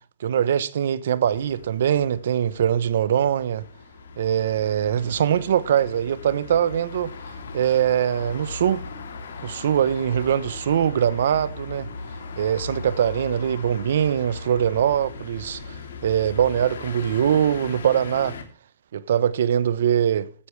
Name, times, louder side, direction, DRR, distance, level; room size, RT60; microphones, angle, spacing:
voice 1, 0.2-3.6 4.2-7.1 7.5-8.8 9.4-11.9 12.4-15.8 16.0-18.4 18.9-20.3, right 9 dB, 60° right, 1.1 m, -22 dB
sound 1, 1.2-18.4, left 4 dB, 80° left, 3.4 m, -38 dB
16.0 x 9.9 x 3.4 m
hypercardioid pair, 170°, 0 cm